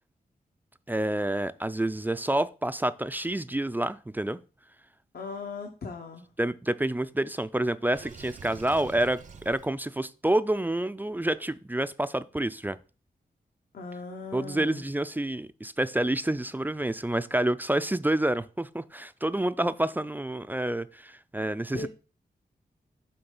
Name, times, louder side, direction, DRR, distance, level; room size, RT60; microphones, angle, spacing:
voice 1, 0.9-4.4 6.4-12.8 14.3-21.9, right 1 dB, 10° right, 0.3 m, -28 dB
voice 2, 5.1-6.3 13.7-14.8 21.7-21.9, left 4 dB, 65° left, 1.0 m, -38 dB
Water / Sink (filling or washing), 7.9-9.7, right 5 dB, 50° right, 0.6 m, -45 dB
7.0 x 3.2 x 5.3 m
wide cardioid pair, 85°, 17 cm